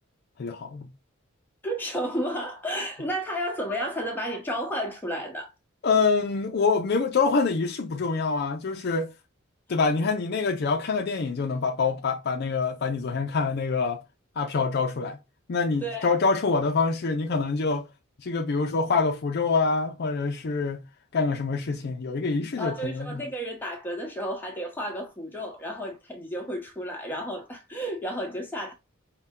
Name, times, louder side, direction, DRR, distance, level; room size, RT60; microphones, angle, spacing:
voice 1, 0.4-0.9 5.8-9.1 9.7-14.0 14.4-15.2 15.5-17.9 18.2-20.8 21.1-23.2, left 4 dB, 50° left, 0.4 m, -25 dB
voice 2, 1.6-5.5 15.8-16.1 22.6-28.7, equal, 10° left, 1.0 m, -32 dB
5.4 x 2.1 x 3.6 m
head